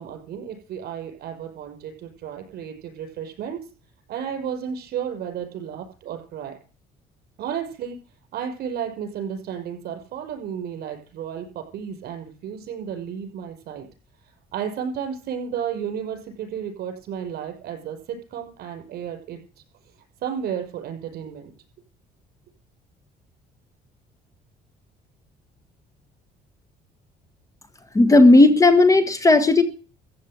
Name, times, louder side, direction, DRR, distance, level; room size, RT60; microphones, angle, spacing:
voice 1, 0.0-3.6 4.1-6.5 7.4-8.0 8.3-13.9 14.5-19.4 20.2-21.5, right 8 dB, 70° right, 5 dB, 5.7 m, -32 dB
voice 2, 27.9-29.6, left 2 dB, 20° left, 10 dB, 1.6 m, -14 dB
15.0 x 8.3 x 8.9 m, 0.39 s
cardioid pair, 110°, 17 cm